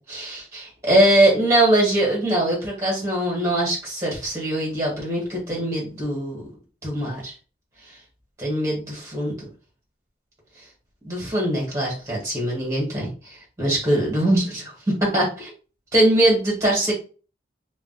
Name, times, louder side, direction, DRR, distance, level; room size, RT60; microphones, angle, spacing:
voice 1, 0.1-6.4 6.8-7.3 8.4-9.5 11.0-14.7 15.0-15.5 15.9-16.9, right 1 dB, 15° right, -4 dB, 1.2 m, -22 dB
2.3 x 2.2 x 3.9 m, 0.37 s
head